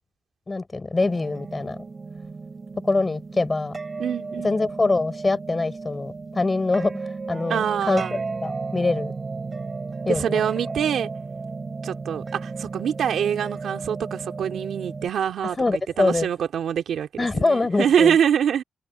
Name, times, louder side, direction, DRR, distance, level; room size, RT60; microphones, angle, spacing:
voice 1, 0.5-1.8 2.8-3.8 4.4-9.1 10.1-10.4 15.4-16.3 17.2-18.2, left 3 dB, 25° left, 5.9 m, -24 dB
sound 1, 1.0-15.1, right 4 dB, 30° right, 6.9 m, -34 dB
voice 2, 4.0-4.7 7.5-8.2 10.1-11.1 11.8-18.6, right 8 dB, 80° right, 2.7 m, -25 dB
cardioid pair, 115°, 0 cm